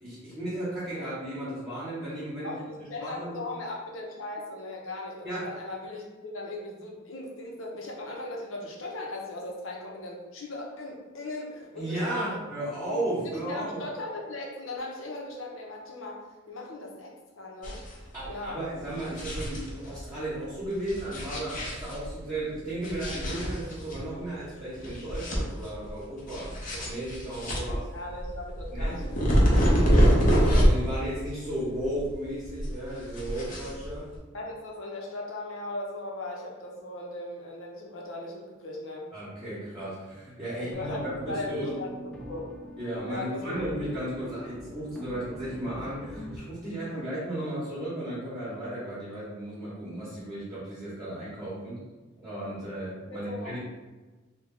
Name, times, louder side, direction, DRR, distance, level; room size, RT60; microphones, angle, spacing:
voice 1, 0.0-2.6 3.0-3.4 5.2-5.5 11.7-13.8 18.1-27.8 28.7-29.0 30.5-34.1 39.1-41.7 42.8-51.8 52.2-53.6, right 1 dB, 15° right, -11 dB, 1.0 m, -35 dB
voice 2, 2.4-12.4 13.2-18.6 27.5-29.2 29.6-30.3 34.3-39.1 40.6-41.9 42.2-42.5 43.0-43.6 53.1-53.6, left 2 dB, 80° left, -1 dB, 0.7 m, -38 dB
sound 1, 17.6-18.0 18.2-18.3 18.8-20.0 20.8-22.2 22.8-24.0 24.4-24.5 24.8-25.9 26.2-31.0 31.2-32.2 32.4-34.1, equal, 40° left, 0.7 m, -25 dB
sound 2, 40.7-46.4, equal, 5° left, 0.4 m, -43 dB
3.2 x 2.2 x 3.7 m, 1.2 s
head